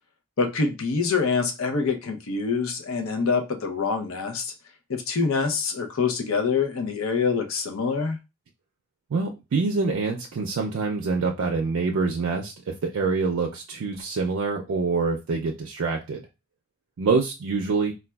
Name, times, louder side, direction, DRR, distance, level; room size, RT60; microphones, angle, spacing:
voice 1, 0.4-4.5 4.9-8.2, left 5 dB, 75° left, 5 dB, 0.6 m, -25 dB
voice 2, 9.1-16.2 17.0-17.9, right 4 dB, 70° right, 1 dB, 0.4 m, -26 dB
4.0 x 2.2 x 2.2 m, 0.26 s
head